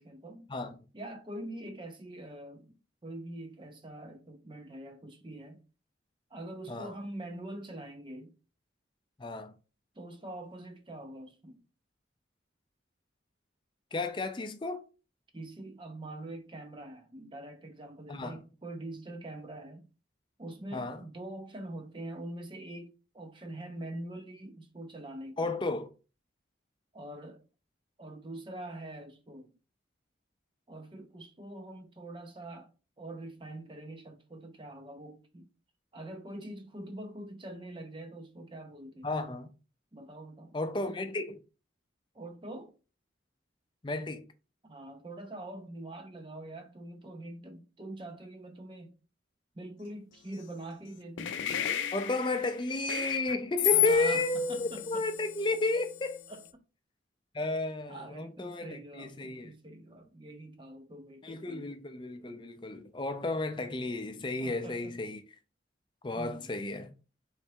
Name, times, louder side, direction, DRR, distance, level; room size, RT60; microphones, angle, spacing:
voice 1, 0.0-0.5 0.9-5.6 6.3-8.3 9.9-11.6 15.3-19.9 20.4-25.5 26.9-27.4 28.0-29.5 30.7-32.7 33.0-35.5 35.9-39.1 39.9-41.1 42.1-42.7 44.6-49.0 49.5-51.3 53.6-55.0 56.3-56.4 57.9-61.7 64.4-65.0 66.1-66.5, right 1 dB, 25° right, 0.5 m, -44 dB
voice 2, 9.2-9.5 13.9-14.8 18.1-18.4 20.7-21.0 25.4-25.9 39.0-39.5 40.5-41.4 43.8-44.3 51.9-56.2 57.3-59.5 61.2-65.2 66.0-66.9, left 2 dB, 25° left, 0.4 m, -32 dB
sound 1, 51.2-56.5, left 12 dB, 85° left, 0.4 m, -33 dB
3.3 x 3.1 x 4.5 m
head